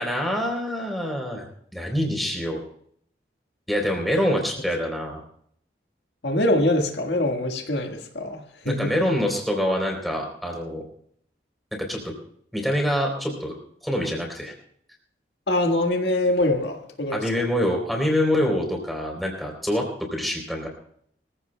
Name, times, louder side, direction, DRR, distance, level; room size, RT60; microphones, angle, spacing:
voice 1, 0.0-1.5 1.7-2.6 3.7-5.2 8.6-10.8 11.7-12.1 12.5-13.5 13.8-14.5 17.1-20.7, equal, ahead, 0 dB, 3.5 m, -25 dB
voice 2, 6.2-9.0 15.5-17.5, left 1 dB, 85° left, 3 dB, 1.7 m, -24 dB
23.5 x 15.5 x 2.3 m, 0.66 s
head